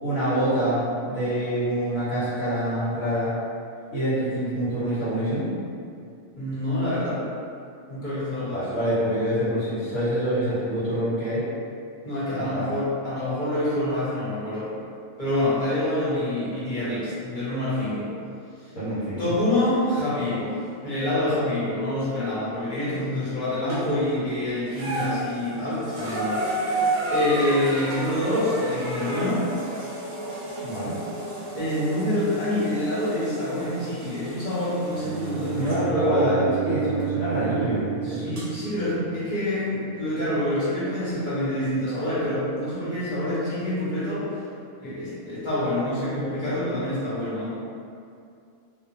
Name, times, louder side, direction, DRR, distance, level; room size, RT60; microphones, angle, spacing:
voice 1, 0.0-3.3 3.9-5.5 8.5-11.4 12.3-12.7 18.7-19.2 30.6-31.0 35.5-38.3, right 1 dB, 75° left, -12 dB, 1.5 m, -26 dB
voice 2, 6.3-7.2 7.9-8.7 12.0-14.7 15.2-18.1 19.2-26.4 27.1-29.4 30.4-30.6 31.6-36.8 38.0-44.2 44.8-47.5, left 1 dB, 35° left, -12 dB, 1.1 m, -26 dB
sound 1, 23.7-24.2 24.7-35.9 37.0-37.1 38.4-38.5, right 1 dB, 60° right, 0.8 m, -32 dB
Bowed string instrument, 34.9-39.0, right 9 dB, 90° left, 1.2 m, -31 dB
2.7 x 2.4 x 2.7 m, 2.4 s
omnidirectional pair, 1.5 m